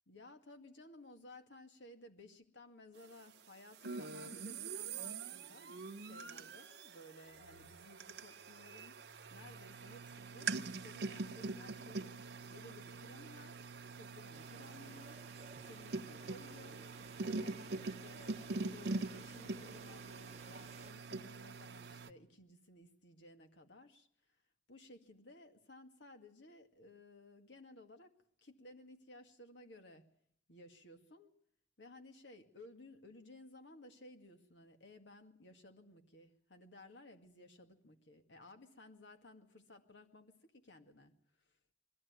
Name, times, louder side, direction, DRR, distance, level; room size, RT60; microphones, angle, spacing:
voice 1, 0.1-9.0 9.3-12.2 12.5-13.6 13.9-15.2 15.6-16.8 17.2-24.1 24.7-28.1 28.4-30.1 30.5-31.3 31.8-41.1 41.5-41.6, left 2 dB, 80° left, 6 dB, 2.1 m, -58 dB
sound 1, 3.8-22.1, right 3 dB, 70° right, 0.9 m, -44 dB
sound 2, 14.3-20.9, right 4 dB, 35° right, 0.8 m, -57 dB
22.0 x 15.0 x 9.5 m, 0.66 s
head